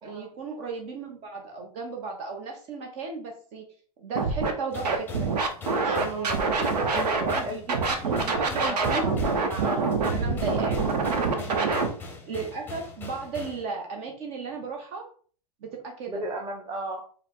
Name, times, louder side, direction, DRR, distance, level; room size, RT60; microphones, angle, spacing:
voice 1, 0.0-3.6 4.0-5.3 5.7-9.0 9.4-9.6 10.0-10.8 11.3-11.8 12.3-15.1 15.6-16.2, right 4 dB, 45° right, 1 dB, 0.8 m, -35 dB
Scratching (performance technique), 4.1-4.5 4.8-7.4 7.7-11.9, right 4 dB, 90° right, 0.8 m, -25 dB
sound 1, 4.7-13.6, left 3 dB, 10° left, 0.7 m, -40 dB
voice 2, 6.1-7.9 8.6-9.1 9.6-9.9 11.5-11.8 16.1-17.0, right 1 dB, 20° right, 2 dB, 1.0 m, -36 dB
4.8 x 2.1 x 3.5 m, 0.44 s
hypercardioid pair, 125°, 20 cm